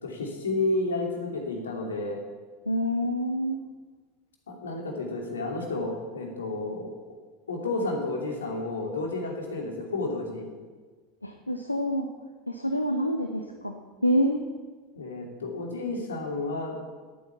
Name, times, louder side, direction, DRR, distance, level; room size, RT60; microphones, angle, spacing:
voice 1, 0.0-2.2 4.5-6.9 7.5-10.5 15.0-16.8, left 2 dB, 75° left, 1 dB, 2.7 m, -31 dB
voice 2, 2.7-3.6 11.2-12.1 12.5-14.4, equal, 90° left, 5 dB, 0.8 m, -27 dB
12.5 x 9.0 x 7.1 m, 1.4 s
figure-of-eight pair, 80°, 0 cm